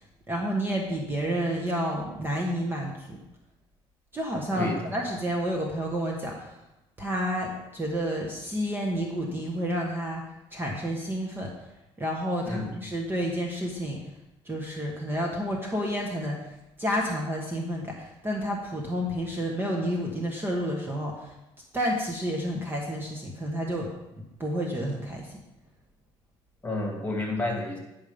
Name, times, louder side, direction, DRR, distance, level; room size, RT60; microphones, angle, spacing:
voice 1, 0.3-3.2 4.1-6.5 7.0-11.5 12.0-14.0 14.4-21.3 21.7-23.9 24.4-25.4, equal, 20° right, -1 dB, 1.6 m, -30 dB
voice 2, 26.6-27.8, left 2 dB, 15° left, 0 dB, 2.6 m, -30 dB
10.5 x 5.6 x 5.3 m, 0.94 s
cardioid pair, 95°, 11 cm